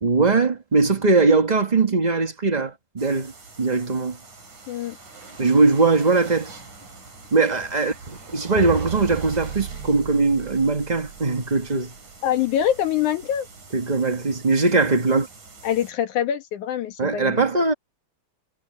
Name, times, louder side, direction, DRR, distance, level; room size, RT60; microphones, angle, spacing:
voice 1, 0.0-3.3 3.6-4.2 5.4-6.5 7.3-11.9 13.7-15.3 17.0-17.7, right 3 dB, 20° right, 1.1 m, -20 dB
sound 1, 3.0-15.9, right 3 dB, 85° right, 7.9 m, -45 dB
sound 2, 8.2-12.2, right 7 dB, 70° right, 3.1 m, -35 dB
voice 2, 12.2-13.5 15.6-17.5, left 10 dB, 80° left, 3.0 m, -24 dB
omnidirectional pair, 3.4 m